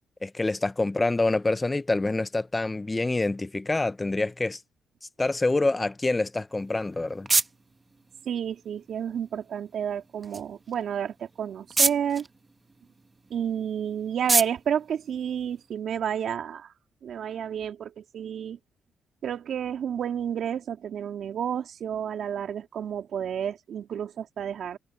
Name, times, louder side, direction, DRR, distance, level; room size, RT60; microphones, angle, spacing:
voice 1, 0.2-4.6 5.2-7.3, left 2 dB, 20° left, 0.7 m, -26 dB
sound 1, 6.5-15.9, right 3 dB, 25° right, 1.2 m, -32 dB
voice 2, 8.2-12.3 13.3-16.7 17.0-18.6 19.2-24.8, right 8 dB, 65° right, 3.4 m, -31 dB
cardioid pair, 90°, 0 cm